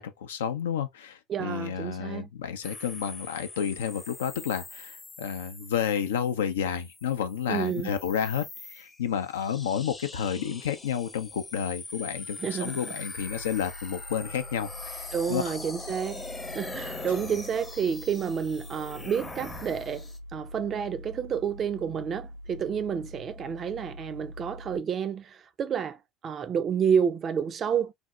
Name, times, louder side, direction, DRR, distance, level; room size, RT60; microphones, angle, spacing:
voice 1, 0.0-8.4 8.7-15.4, left 8 dB, 75° left, 0.4 m, -31 dB
voice 2, 1.3-2.3 7.5-8.0 12.4-12.8 15.1-16.2 16.5-27.9, right 7 dB, 35° right, 0.4 m, -30 dB
sound 1, 2.6-20.2, left 3 dB, 20° left, 0.6 m, -42 dB
sound 2, 13.2-24.8, left 1 dB, 85° right, 1.6 m, -44 dB
3.4 x 2.1 x 2.3 m
figure-of-eight pair, 70°, 0 cm